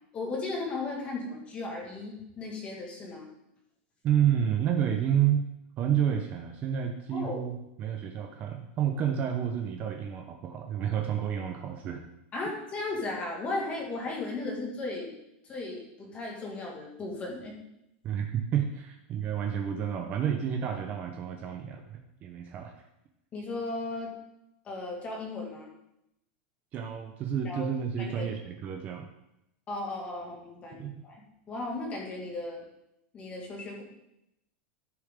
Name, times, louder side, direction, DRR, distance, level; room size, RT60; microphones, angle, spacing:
voice 1, 0.1-3.3 7.1-7.4 12.3-15.2 15.4-17.6 23.3-24.1 24.6-25.7 27.4-27.7 28.0-28.3 29.7-31.2 31.5-32.6 33.1-33.8, left 2 dB, 20° left, 0 dB, 2.1 m, -36 dB
voice 2, 4.0-5.5 5.8-12.0 18.0-22.8 26.7-29.1 30.8-31.0, right 9 dB, 25° right, 4 dB, 0.7 m, -30 dB
14.0 x 6.6 x 3.7 m, 0.85 s
supercardioid pair, 170°, 6 cm